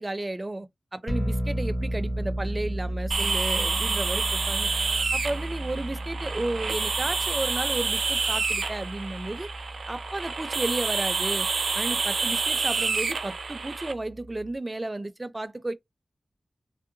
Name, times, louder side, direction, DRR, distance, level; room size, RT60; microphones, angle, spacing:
voice 1, 0.0-4.9 5.1-9.5 9.9-11.5 11.7-15.7, right 2 dB, 35° right, 0.5 m, -33 dB
sound 1, 1.1-14.5, right 1 dB, 40° left, 1.5 m, -34 dB
sound 2, 3.1-13.9, right 4 dB, 85° right, 0.5 m, -28 dB
3.7 x 2.0 x 2.7 m
cardioid pair, 40°, 0 cm